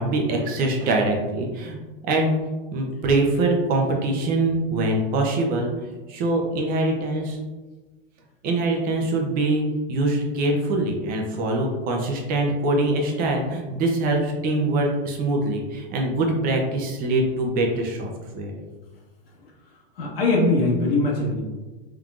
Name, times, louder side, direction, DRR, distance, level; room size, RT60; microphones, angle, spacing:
voice 1, 0.0-1.8 2.0-2.3 2.7-5.7 6.1-7.4 8.4-9.6 9.9-18.5, right 2 dB, 30° right, 1 dB, 0.7 m, -23 dB
voice 2, 19.9-21.4, left 2 dB, 85° left, -2 dB, 1.5 m, -21 dB
4.4 x 3.7 x 2.5 m, 1.2 s
supercardioid pair, 145°, 29 cm